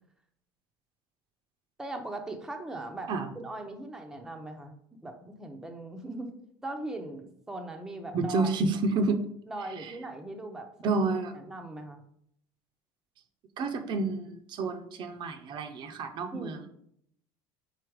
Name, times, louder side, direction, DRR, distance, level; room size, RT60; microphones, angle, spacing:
voice 1, 1.8-6.3 6.6-8.5 9.5-10.9 11.3-12.0 16.3-16.7, right 2 dB, 5° right, 3 dB, 0.6 m, -39 dB
voice 2, 8.1-9.3 9.8-9.9 10.8-11.3 13.6-16.7, right 3 dB, 45° right, 7 dB, 0.6 m, -29 dB
4.9 x 4.2 x 4.6 m, 0.70 s
cardioid pair, 145°, 11 cm